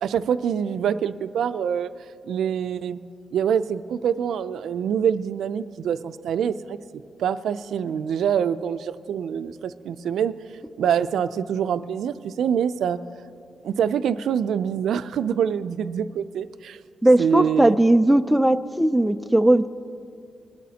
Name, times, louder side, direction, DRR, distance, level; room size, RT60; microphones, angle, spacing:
voice 1, 0.0-1.9 2.2-3.0 3.3-6.8 7.2-10.3 10.8-13.0 13.6-16.8 17.2-17.8, right 8 dB, 80° right, 12 dB, 0.4 m, -25 dB
voice 2, 17.0-19.7, right 1 dB, 5° right, 9 dB, 0.3 m, -18 dB
22.0 x 12.5 x 2.8 m, 2.4 s
wide cardioid pair, 140°, 0 cm